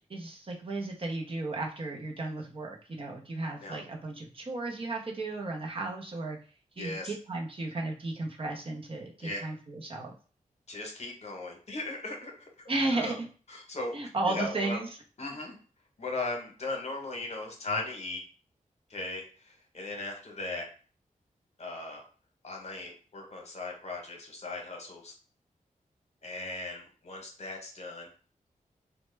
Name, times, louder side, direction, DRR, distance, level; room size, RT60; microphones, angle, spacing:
voice 1, 0.1-6.4 6.8-10.1 12.7-13.3 13.9-14.9, right 2 dB, 40° right, 0 dB, 0.7 m, -34 dB
voice 2, 6.8-7.1 9.2-9.4 10.7-12.5 12.9-13.1 13.5-14.0 14.3-14.8 15.2-15.6 16.0-18.2 18.9-20.6 21.6-22.0 22.4-25.1 26.2-28.1, left 2 dB, 50° left, 1 dB, 0.9 m, -37 dB
3.1 x 2.1 x 3.2 m, 0.38 s
wide cardioid pair, 110°, 14 cm